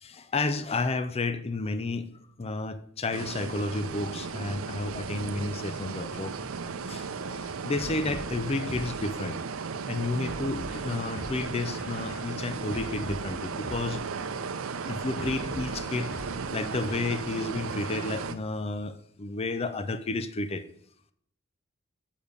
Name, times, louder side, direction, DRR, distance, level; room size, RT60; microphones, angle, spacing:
voice 1, 0.0-2.1 2.4-6.3 6.9-9.4 9.9-14.0 14.8-20.6, left 3 dB, 30° left, 11 dB, 0.5 m, -31 dB
sound 1, 3.1-18.4, right 5 dB, 80° right, 0.6 m, -35 dB
sound 2, 7.8-9.5 10.2-14.4 15.2-17.7, equal, 70° left, 2.6 m, -43 dB
7.2 x 5.2 x 6.6 m, 0.63 s
head